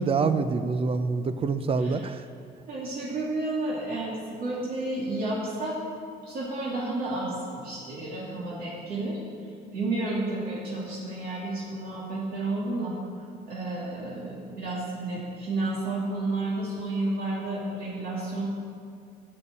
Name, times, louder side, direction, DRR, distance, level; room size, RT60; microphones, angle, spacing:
voice 1, 0.0-2.2, right 4 dB, 35° right, 11 dB, 0.6 m, -26 dB
voice 2, 2.7-5.8 6.2-9.2 9.7-12.9 13.5-18.5, right 2 dB, 60° right, -6 dB, 2.4 m, -31 dB
8.6 x 7.2 x 8.7 m, 2.3 s
cardioid pair, 110°, 17 cm